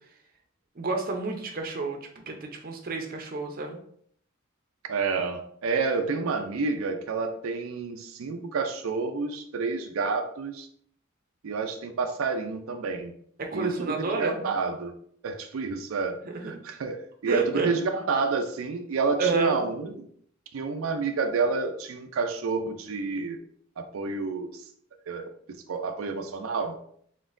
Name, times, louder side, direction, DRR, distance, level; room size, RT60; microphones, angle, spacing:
voice 1, 0.8-2.0 2.3-3.8 13.4-14.4 16.3-16.6 17.3-17.7 19.2-19.6, right 3 dB, 45° right, 3 dB, 0.6 m, -29 dB
voice 2, 4.9-10.7 11.4-13.1 13.5-14.9 15.2-16.2 16.4-20.0 20.5-23.4 23.8-24.7 25.1-26.7, right 4 dB, 90° right, 5 dB, 0.4 m, -29 dB
4.1 x 3.8 x 2.5 m, 0.63 s
head